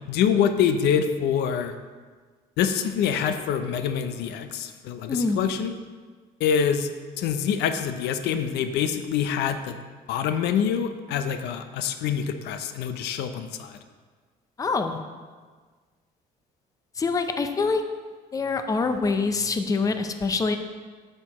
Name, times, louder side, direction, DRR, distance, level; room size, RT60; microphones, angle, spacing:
voice 1, 0.1-1.7 2.6-5.7 6.4-6.9 7.2-9.8 10.1-13.7, left 8 dB, 80° left, 9 dB, 0.6 m, -25 dB
voice 2, 5.1-5.4 14.6-15.0 17.0-17.8 18.3-20.6, left 4 dB, 20° left, 7 dB, 0.5 m, -25 dB
8.4 x 6.4 x 3.0 m, 1.5 s
cardioid pair, 110°, 17 cm